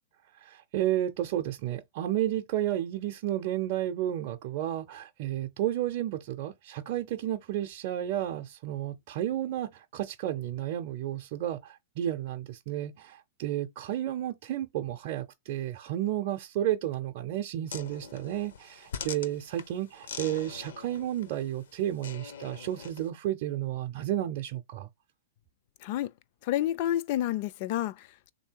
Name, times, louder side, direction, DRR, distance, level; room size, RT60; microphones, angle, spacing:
voice 1, 0.3-24.9, right 12 dB, 50° right, 0.5 m, -32 dB
sound 1, 17.7-23.1, left 6 dB, 75° left, 0.7 m, -43 dB
voice 2, 26.4-28.3, left 13 dB, 50° left, 0.4 m, -30 dB
3.3 x 2.7 x 4.5 m
hypercardioid pair, 125°, 0 cm